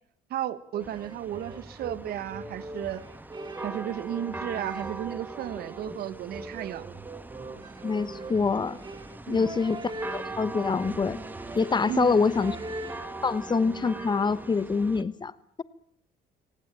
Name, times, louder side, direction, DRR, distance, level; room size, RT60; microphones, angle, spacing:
voice 1, 0.3-3.0 3.6-6.8 9.3-9.5 11.9-12.2, right 11 dB, 65° right, 15 dB, 1.3 m, -34 dB
sound 1, 0.7-13.3, right 2 dB, 25° right, 3.2 m, -42 dB
sound 2, 0.8-15.0, right 3 dB, 10° right, 1.4 m, -41 dB
voice 2, 7.8-8.8 9.3-9.8 10.1-11.2 11.5-12.6 13.2-15.3, left 4 dB, 25° left, 17 dB, 1.1 m, -25 dB
24.0 x 18.5 x 9.0 m, 0.68 s
cardioid pair, 110°, 17 cm